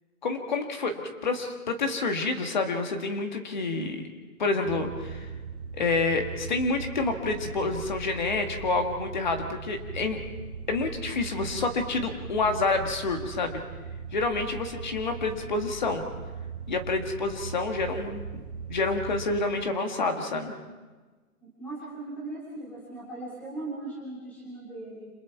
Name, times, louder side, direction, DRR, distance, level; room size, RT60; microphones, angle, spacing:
voice 1, 0.2-4.1 4.4-5.3 5.7-10.2 10.7-13.6 14.1-16.0 16.7-18.2 18.7-20.5, left 3 dB, 30° left, 5 dB, 1.9 m, -28 dB
sound 1, 4.6-19.5, right 5 dB, 25° right, 3.3 m, -39 dB
voice 2, 21.6-25.1, right 2 dB, 5° left, -6 dB, 3.1 m, -38 dB
29.0 x 27.0 x 4.7 m, 1.3 s
hypercardioid pair, 175°, 44 cm